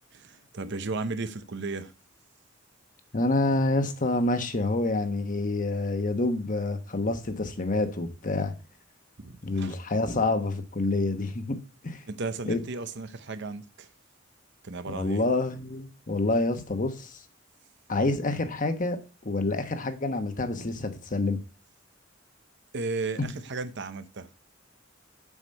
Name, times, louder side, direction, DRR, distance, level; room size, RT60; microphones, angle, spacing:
voice 1, 0.1-1.9 9.2-9.7 12.1-13.9 14.6-15.3 22.7-24.3, right 3 dB, 60° right, 0.8 m, -34 dB
voice 2, 3.1-8.5 9.4-11.6 11.8-12.0 12.5-12.6 14.9-17.2 17.9-19.0 19.2-21.4 23.2-23.3, left 2 dB, 45° left, 1.2 m, -27 dB
7.3 x 6.2 x 5.3 m
head